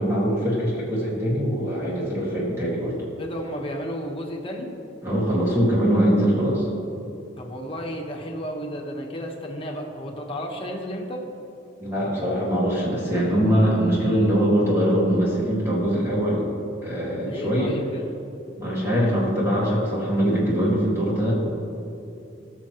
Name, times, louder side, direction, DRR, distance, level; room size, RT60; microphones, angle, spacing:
voice 1, 0.0-2.9 5.0-6.7 11.8-16.4 16.8-17.7 18.6-21.3, equal, 15° right, -7 dB, 2.1 m, -22 dB
voice 2, 3.2-4.7 7.4-11.2 17.3-18.1, equal, 30° left, 0 dB, 1.3 m, -33 dB
18.5 x 6.6 x 3.1 m, 2.7 s
head